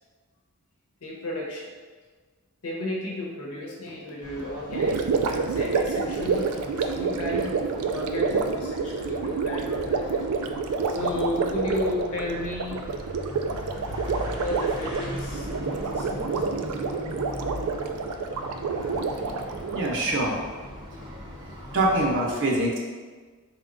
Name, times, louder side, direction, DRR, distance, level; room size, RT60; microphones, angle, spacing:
voice 1, 1.0-1.7 2.6-7.6 7.9-10.3 10.9-12.9 14.2-16.4 22.2-22.6, left 1 dB, 75° left, -3 dB, 0.9 m, -33 dB
sound 1, 4.2-22.2, left 1 dB, 20° right, 0.7 m, -39 dB
Gurgling, 4.7-20.0, right 4 dB, 90° right, 0.3 m, -28 dB
voice 2, 19.7-20.4 21.7-22.8, right 1 dB, 55° right, -2 dB, 0.7 m, -24 dB
4.2 x 3.5 x 2.6 m, 1.4 s
head